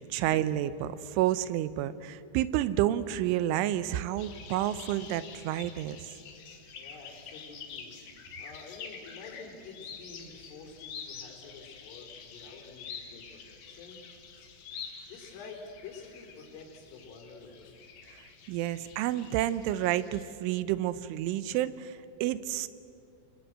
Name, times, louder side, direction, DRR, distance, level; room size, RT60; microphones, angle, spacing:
voice 1, 0.0-6.1 18.5-22.7, right 13 dB, 85° right, 14 dB, 3.2 m, -30 dB
sound 1, 4.2-20.2, left 6 dB, 60° left, 3.4 m, -47 dB
voice 2, 6.7-7.9 8.4-14.0 15.1-17.8, left 4 dB, 85° left, 2 dB, 6.6 m, -48 dB
29.0 x 23.5 x 7.9 m, 2.5 s
omnidirectional pair, 5.5 m